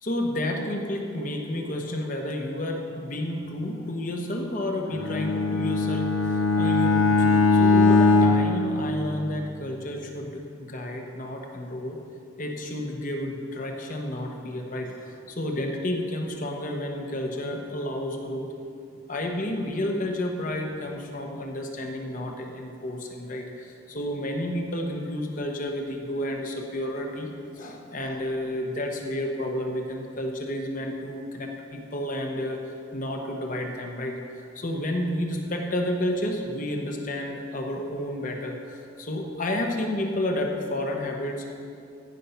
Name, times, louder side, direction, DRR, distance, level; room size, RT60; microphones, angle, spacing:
voice 1, 0.0-12.0 12.4-18.5 19.1-32.6 32.9-41.5, left 1 dB, 40° left, 2 dB, 1.0 m, -31 dB
Bowed string instrument, 4.9-9.5, left 3 dB, 80° left, 1.2 m, -21 dB
14.5 x 5.4 x 5.8 m, 2.4 s
head